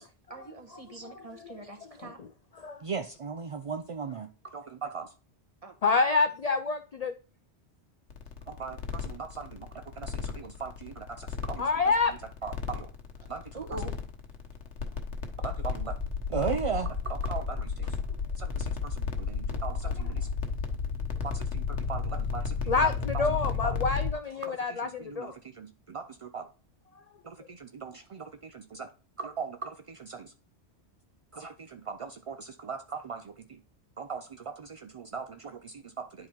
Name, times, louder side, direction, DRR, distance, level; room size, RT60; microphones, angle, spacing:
voice 1, 0.3-2.2 5.6-5.7 13.5-13.9 27.9-28.0, right 2 dB, 30° right, 1.4 m, -43 dB
voice 2, 0.9-1.5 2.6-2.8 5.8-7.1 11.6-12.2 22.7-25.4, left 4 dB, 55° left, 0.4 m, -27 dB
voice 3, 2.8-5.1 8.5-11.7 12.4-12.9 13.3-13.6 15.4-16.0 16.3-18.0 18.4-20.3 21.2-23.3 23.6-23.8 24.4-26.5 27.2-28.9 29.2-30.3 31.3-33.6 34.0-36.3, right 5 dB, 50° right, 0.4 m, -38 dB
sound 1, 8.1-24.1, left 5 dB, 85° left, 1.4 m, -33 dB
10.5 x 3.8 x 4.5 m
omnidirectional pair, 1.2 m